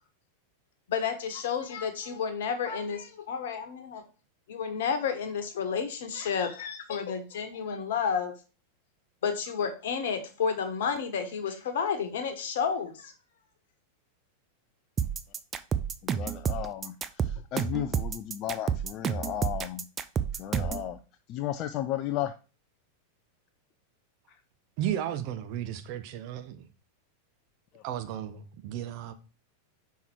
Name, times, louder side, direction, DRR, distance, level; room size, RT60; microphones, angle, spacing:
voice 1, 0.9-4.0 4.5-8.3 9.2-13.1, left 6 dB, 55° left, 1.1 m, -31 dB
sound 1, 15.0-20.9, right 7 dB, 25° right, 0.4 m, -30 dB
voice 2, 16.0-19.9 20.4-21.0 21.3-22.3 24.3-24.4 27.7-27.8, left 12 dB, 35° left, 0.4 m, -34 dB
voice 3, 24.8-26.7 27.8-29.1, right 11 dB, 45° right, 0.8 m, -34 dB
5.7 x 4.6 x 4.5 m
figure-of-eight pair, 90°, 0 cm